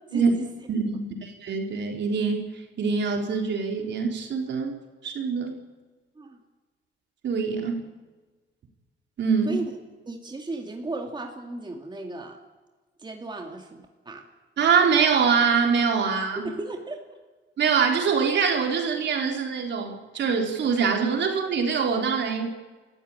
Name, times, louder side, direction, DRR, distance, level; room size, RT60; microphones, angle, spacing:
voice 1, 0.1-0.5 6.1-6.4 9.5-9.6 10.1-12.4 13.0-14.2 16.4-17.2, right 2 dB, 20° right, 2 dB, 2.5 m, -35 dB
voice 2, 0.7-2.5 2.8-4.8 5.0-5.5 7.2-7.8 9.2-9.6 14.6-16.5 17.6-22.5, right 6 dB, 65° right, 2 dB, 4.0 m, -24 dB
30.0 x 14.0 x 8.9 m, 1.3 s
cardioid pair, 90°, 20 cm